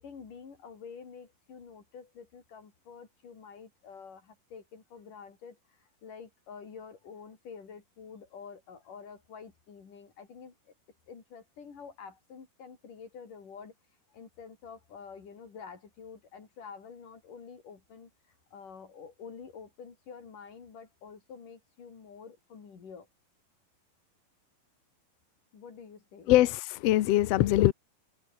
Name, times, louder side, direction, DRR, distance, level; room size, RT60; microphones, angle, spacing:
voice 1, 0.0-10.7 11.1-13.8 14.1-18.1 18.5-23.1 25.5-26.3, left 6 dB, 60° left, 5.6 m, -48 dB
voice 2, 26.3-27.7, left 14 dB, 90° left, 1.4 m, -23 dB
omnidirectional pair, 4.2 m